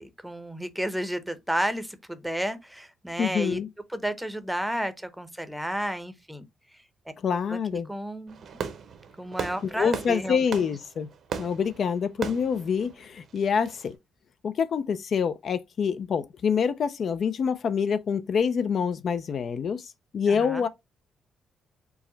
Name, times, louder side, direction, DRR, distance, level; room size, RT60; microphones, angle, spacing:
voice 1, 0.0-3.6 3.9-6.4 7.5-8.5 9.2-10.4 20.3-20.7, right 1 dB, 5° right, 0.7 m, -32 dB
voice 2, 3.2-3.7 7.2-7.9 9.8-11.1 11.4-14.0 14.4-19.8 20.1-20.7, left 6 dB, 55° left, 0.4 m, -26 dB
Fireworks, 8.3-13.9, right 6 dB, 60° right, 0.8 m, -38 dB
4.6 x 2.1 x 3.9 m
cardioid pair, 90°, 0 cm